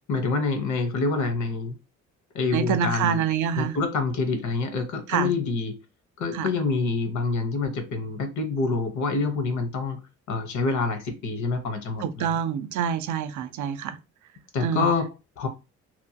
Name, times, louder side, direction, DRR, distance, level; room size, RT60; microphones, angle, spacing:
voice 1, 0.1-1.7 2.3-3.2 3.6-5.7 6.2-10.0 10.3-12.4 14.5-15.5, left 3 dB, 70° left, 0.9 m, -26 dB
voice 2, 2.5-3.8 5.1-5.3 6.3-6.5 12.0-14.0 14.6-14.9, right 8 dB, 75° right, 0.5 m, -26 dB
2.9 x 2.2 x 2.7 m
cardioid pair, 90°, 30 cm